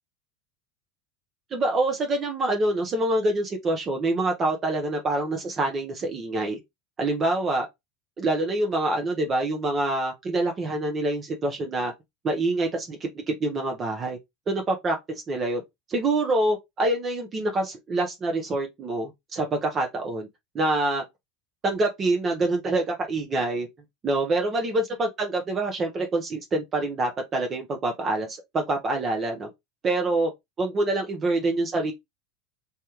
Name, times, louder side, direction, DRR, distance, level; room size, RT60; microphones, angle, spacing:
voice 1, 1.5-6.6 7.0-7.7 8.2-11.9 12.2-14.2 14.5-15.6 15.9-20.3 20.5-21.0 21.6-23.7 24.0-29.5 29.8-30.3 30.6-31.9, right 2 dB, 35° right, 0.7 m, -26 dB
3.4 x 2.2 x 2.9 m
hypercardioid pair, 85°, 0 cm